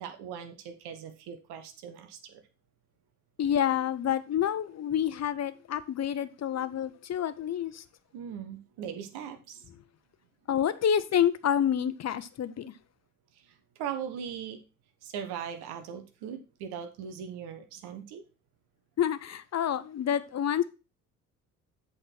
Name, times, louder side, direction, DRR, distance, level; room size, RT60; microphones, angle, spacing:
voice 1, 0.0-2.4 8.1-9.6 13.3-14.6 15.0-18.2, right 8 dB, 60° right, 1.3 m, -40 dB
voice 2, 3.4-7.8 10.5-12.7 19.0-20.6, left 9 dB, 40° left, 0.8 m, -28 dB
8.0 x 4.1 x 6.0 m
hypercardioid pair, 50°, 43 cm